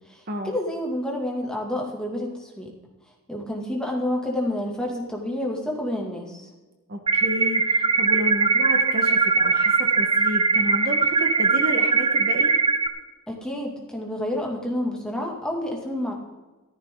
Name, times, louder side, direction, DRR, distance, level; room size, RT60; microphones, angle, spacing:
voice 1, 0.1-2.7 3.3-6.4 13.3-16.1, left 1 dB, 5° left, -1 dB, 2.4 m, -29 dB
voice 2, 6.9-12.5, equal, 45° right, 4 dB, 1.4 m, -31 dB
sound 1, 7.1-12.9, right 4 dB, 20° right, 0.6 m, -21 dB
15.0 x 14.0 x 3.9 m, 1.2 s
head